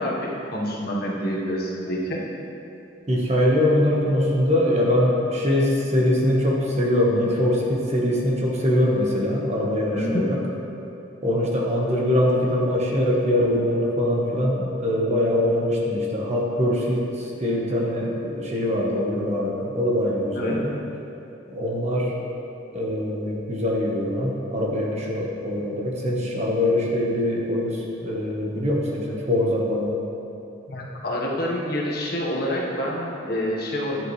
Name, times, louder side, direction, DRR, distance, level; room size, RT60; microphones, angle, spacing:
voice 1, 0.0-2.2 9.9-10.3 20.3-20.6 30.7-34.1, equal, 55° left, -3 dB, 1.4 m, -27 dB
voice 2, 3.1-10.4 11.2-20.7 21.5-22.1 22.7-29.9, left 1 dB, 35° right, -3 dB, 1.3 m, -23 dB
11.0 x 7.8 x 3.2 m, 2.9 s
head